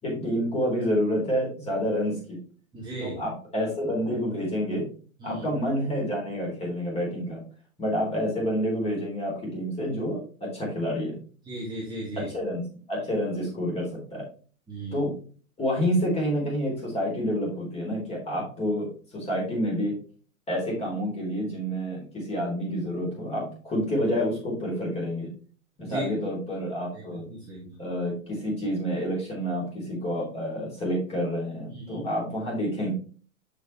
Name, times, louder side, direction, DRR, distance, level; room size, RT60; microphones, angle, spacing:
voice 1, 0.0-2.4 3.0-4.9 5.2-7.4 7.8-10.2 10.5-11.2 12.3-12.6 12.9-13.9 14.1-14.2 14.9-15.1 15.6-18.9 19.1-19.9 20.5-25.3 25.8-27.3 27.8-32.9, equal, 15° left, -4 dB, 3.7 m, -28 dB
voice 2, 2.7-3.2 5.2-5.5 11.5-12.3 14.7-15.0 25.8-26.1 26.9-27.8 31.7-32.1, right 1 dB, 10° right, -6 dB, 2.0 m, -36 dB
6.8 x 6.4 x 3.3 m, 0.41 s
hypercardioid pair, 135°, 42 cm